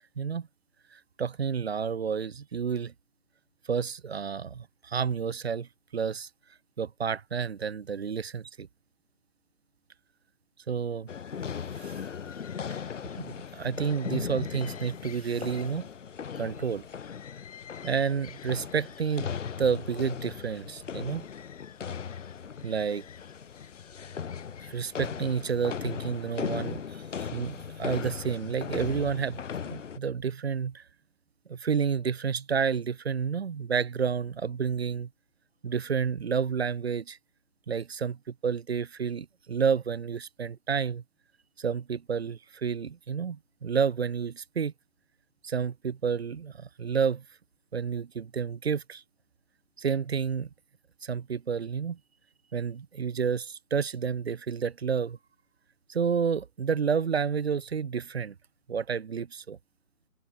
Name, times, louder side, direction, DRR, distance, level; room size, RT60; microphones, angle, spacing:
voice 1, 0.2-0.5 0.9-2.9 3.7-6.3 6.8-8.7 10.7-11.1 11.8-12.0 13.2-15.9 16.4-16.8 17.8-19.3 19.6-21.2 22.6-23.0 24.6-30.8 31.5-35.1 35.6-37.2 37.7-41.0 41.6-44.7 45.4-47.2 47.7-49.0 49.8-50.5 51.0-52.0 52.5-55.2 55.9-58.3 58.7-59.6, right 6 dB, 45° right, 0.8 m, -30 dB
sound 1, 11.1-30.0, left 7 dB, 55° left, 1.0 m, -38 dB
sound 2, 11.5-25.8, left 9 dB, 25° left, 1.4 m, -54 dB
hypercardioid pair, 160°, 43 cm